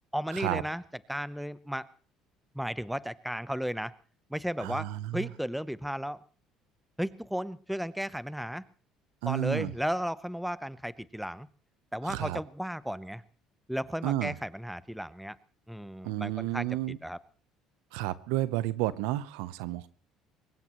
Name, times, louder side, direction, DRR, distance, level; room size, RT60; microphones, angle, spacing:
voice 1, 0.1-0.8 1.1-1.9 2.5-3.9 4.3-6.2 7.0-8.6 9.2-11.5 11.9-13.2 13.7-15.4 15.7-16.7 17.0-17.2, equal, ahead, 17 dB, 0.7 m, -34 dB
voice 2, 4.6-5.3 9.2-9.7 12.0-12.4 14.0-14.3 16.0-17.0 17.9-19.9, right 15 dB, 85° right, 16 dB, 0.7 m, -31 dB
23.0 x 20.0 x 3.0 m, 0.39 s
supercardioid pair, 95°, 0 cm